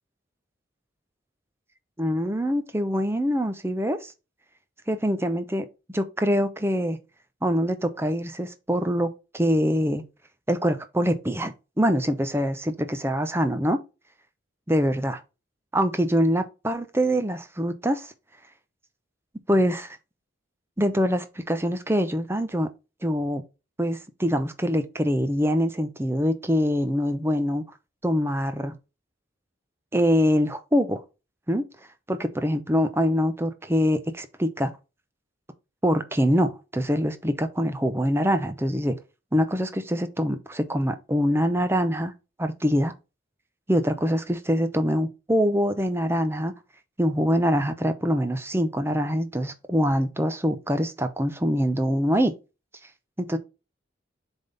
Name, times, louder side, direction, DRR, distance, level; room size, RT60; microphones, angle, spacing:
voice 1, 2.0-4.1 4.9-5.7 5.9-7.0 7.4-10.0 10.5-13.8 14.7-15.2 15.7-18.1 19.5-20.0 20.8-22.7 23.0-23.4 23.8-27.6 28.0-28.7 29.9-31.0 31.5-31.6 32.1-34.7 35.8-39.0 39.3-42.1 42.4-42.9 43.7-46.5 47.0-52.3 53.2-53.4, equal, 10° right, 0.7 m, -24 dB
7.2 x 3.6 x 4.0 m
head